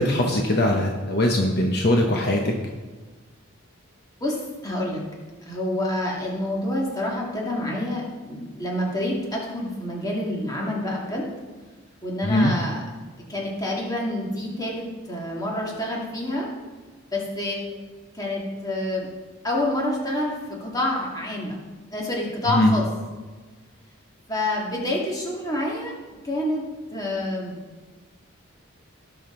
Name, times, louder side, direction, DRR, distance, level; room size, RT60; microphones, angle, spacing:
voice 1, 0.0-2.6 12.2-12.5 22.5-22.7, left 1 dB, 50° left, 1 dB, 1.0 m, -21 dB
voice 2, 4.2-5.0 5.4-11.3 12.0-12.8 13.3-16.5 17.1-17.6 18.1-19.1 19.4-21.5 21.9-22.9 24.3-25.9 26.2-26.7 26.9-27.6, left 1 dB, 15° left, -3 dB, 2.2 m, -27 dB
18.0 x 6.6 x 3.9 m, 1.4 s
head